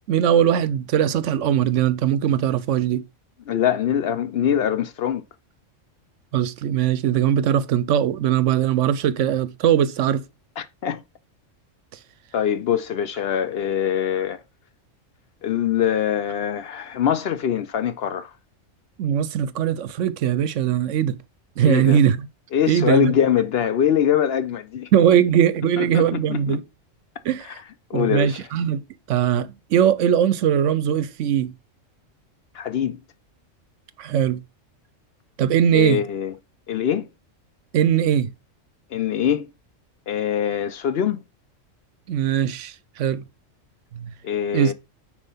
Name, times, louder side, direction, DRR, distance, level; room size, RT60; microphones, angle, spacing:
voice 1, 0.1-3.0 6.3-10.2 19.0-21.2 21.6-22.3 22.7-23.1 24.9-26.6 27.2-27.6 27.9-28.8 29.1-31.5 34.0-34.4 35.4-36.0 37.7-38.3 42.1-43.2 44.0-44.1 44.5-44.7, right 9 dB, 75° right, 0.9 m, -20 dB
voice 2, 3.5-5.2 10.6-11.0 12.3-14.4 15.4-18.3 21.7-22.0 22.5-24.9 25.8-26.6 27.9-28.4 32.5-33.0 35.7-36.3 36.7-37.0 38.9-39.4 40.1-41.2 44.2-44.7, left 9 dB, 60° left, 0.7 m, -23 dB
9.0 x 3.1 x 5.5 m
omnidirectional pair, 1.3 m